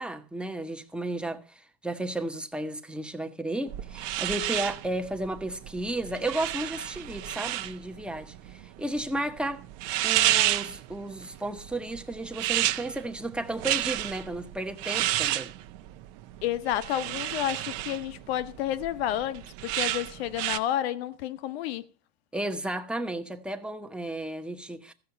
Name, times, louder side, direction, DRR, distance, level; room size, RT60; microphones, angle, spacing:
voice 1, 0.0-9.6 10.0-15.5 22.3-24.9, right 1 dB, 5° right, 1.1 m, -33 dB
sound 1, 3.7-20.6, right 15 dB, 55° right, 1.0 m, -31 dB
voice 2, 16.4-21.8, left 12 dB, 70° left, 1.1 m, -30 dB
15.0 x 6.7 x 5.8 m
supercardioid pair, 130°, 32 cm